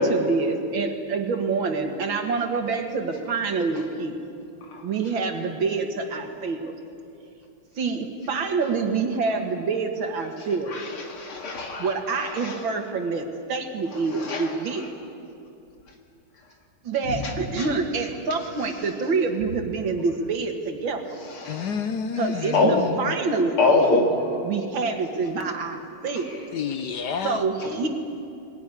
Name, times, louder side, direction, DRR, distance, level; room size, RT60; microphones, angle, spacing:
voice 1, 0.0-4.2 4.8-6.7 7.8-10.8 11.8-14.9 16.8-21.0 22.2-23.6 24.4-26.4 27.2-27.9, right 4 dB, 65° right, 5 dB, 2.5 m, -27 dB
voice 2, 10.7-11.9 12.4-12.6 14.1-14.4 17.1-17.2 21.4-21.7 22.5-22.8 23.6-24.1, left 3 dB, 85° left, 1 dB, 3.4 m, -23 dB
voice 3, 21.4-23.1 26.5-27.4, left 6 dB, 60° left, 9 dB, 1.2 m, -29 dB
21.0 x 17.5 x 9.9 m, 2.6 s
omnidirectional pair, 2.3 m